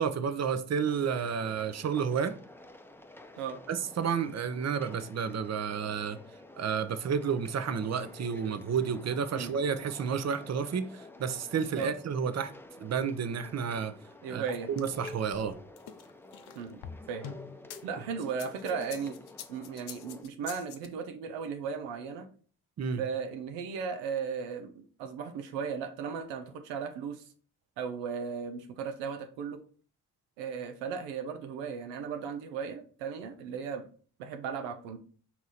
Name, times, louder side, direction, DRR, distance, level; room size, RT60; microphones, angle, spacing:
voice 1, 0.0-2.3 3.7-6.2 6.6-12.5 12.8-13.9 14.3-15.5 22.8-23.0, right 6 dB, 40° right, 12 dB, 0.6 m, -31 dB
sound 1, 0.8-20.2, left 2 dB, 5° left, 0.6 m, -50 dB
voice 2, 14.2-14.7 16.6-16.8 17.1-17.4 17.8-19.2 19.5-22.3 23.0-27.2 27.8-29.6 30.4-33.9 34.2-35.0, right 6 dB, 90° right, 8 dB, 0.6 m, -36 dB
sound 2, 14.5-17.8 18.3-20.9, left 8 dB, 65° left, 0.7 m, -45 dB
4.6 x 2.8 x 4.0 m, 0.42 s
hypercardioid pair, 40°, 43 cm